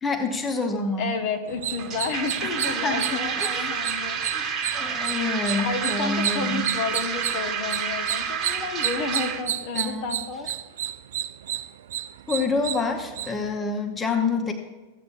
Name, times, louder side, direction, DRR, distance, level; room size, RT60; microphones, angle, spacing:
voice 1, 0.0-1.2 2.4-3.7 4.3-4.4 4.7-6.7 9.7-10.2 12.3-14.5, left 3 dB, 15° left, 5 dB, 0.8 m, -27 dB
voice 2, 1.0-5.0 5.6-10.5, left 4 dB, 45° left, 4 dB, 1.0 m, -31 dB
sound 1, 1.5-13.6, right 11 dB, 60° right, 0.3 m, -32 dB
sound 2, 1.8-9.4, right 6 dB, 25° right, 1.2 m, -29 dB
15.0 x 8.1 x 2.5 m, 1.2 s
figure-of-eight pair, 90°, 0 cm